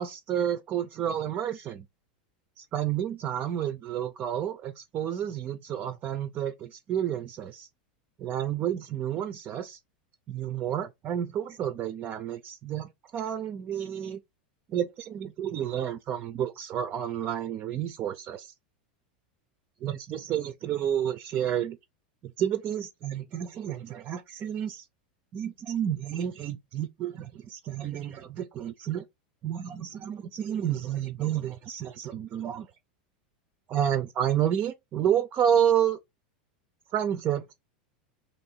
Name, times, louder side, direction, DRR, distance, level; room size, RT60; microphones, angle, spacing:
voice 1, 0.0-1.9 2.6-7.7 8.2-9.8 10.3-14.2 14.7-18.5 19.8-21.8 22.2-24.9 25.3-29.0 29.4-32.7 33.7-36.0 36.9-37.5, right 10 dB, 35° right, 0.4 m, -30 dB
3.0 x 2.6 x 4.3 m
supercardioid pair, 120°, 5 cm